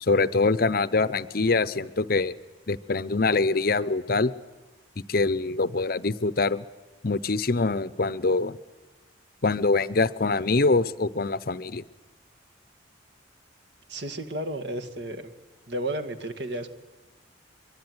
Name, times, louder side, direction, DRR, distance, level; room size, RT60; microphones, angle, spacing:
voice 1, 0.0-2.3 2.7-4.3 5.0-6.6 7.0-8.6 9.4-11.8, left 3 dB, 50° left, 16 dB, 0.7 m, -24 dB
voice 2, 13.9-15.3 15.7-16.7, right 1 dB, 55° right, 6 dB, 2.1 m, -32 dB
23.0 x 23.0 x 9.6 m, 1.2 s
head